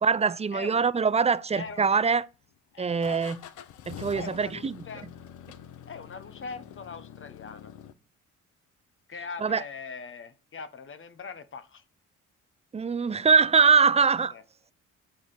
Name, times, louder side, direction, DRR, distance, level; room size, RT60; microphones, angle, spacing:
voice 1, 0.0-2.3 2.8-3.4 3.9-4.8 9.4-9.6 12.7-14.3, right 5 dB, 20° right, 0.5 m, -23 dB
voice 2, 0.5-0.8 1.5-1.9 2.7-3.3 4.1-5.1 5.9-7.7 9.1-11.8 14.3-14.4, left 5 dB, 40° left, 1.3 m, -41 dB
sound 1, 1.7-2.3 3.0-7.9, left 9 dB, 80° left, 0.9 m, -46 dB
9.2 x 4.0 x 6.7 m
cardioid pair, 90°, 30 cm